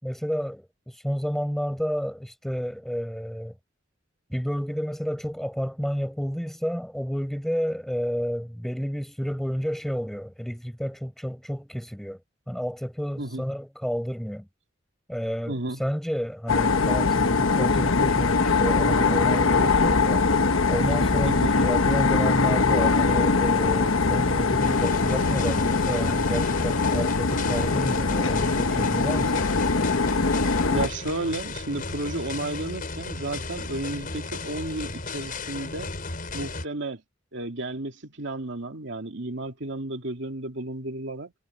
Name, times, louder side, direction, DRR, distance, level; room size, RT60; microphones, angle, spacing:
voice 1, 0.0-3.6 4.3-12.2 12.5-14.5 15.1-20.2 20.7-29.6, equal, ahead, 6.2 m, -30 dB
voice 2, 15.5-15.8 21.2-21.5 30.7-36.0 36.3-37.0 37.3-41.3, right 2 dB, 65° right, 2.7 m, -32 dB
sound 1, 16.5-30.9, left 4 dB, 80° left, 1.2 m, -22 dB
sound 2, 24.6-36.7, left 3 dB, 45° left, 5.7 m, -35 dB
head